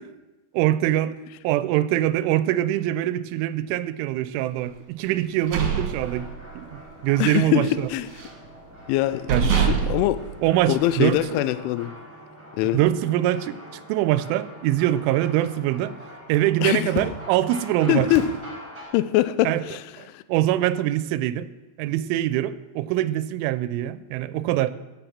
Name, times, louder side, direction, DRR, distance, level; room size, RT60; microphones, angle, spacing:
voice 1, 0.5-1.2 1.4-6.3 6.6-7.9 9.3-10.0 10.4-11.3 12.7-16.0 16.3-18.1 19.5-19.7 20.0-21.5 21.8-24.7, right 13 dB, 90° right, 3.1 m, -24 dB
sound 1, 5.2-6.8 7.1-7.4 7.7-8.5 8.9-9.0 9.3-11.1, right 6 dB, 55° right, 2.4 m, -25 dB
sound 2, 6.0-18.9, equal, 5° right, 2.2 m, -42 dB
voice 2, 7.2-8.1 8.9-10.2 10.7-12.0 12.6-12.8 16.6-16.9 17.9-18.3 18.9-19.8 20.1-20.2, left 14 dB, 85° left, 3.0 m, -23 dB
15.0 x 7.3 x 7.3 m
omnidirectional pair, 5.4 m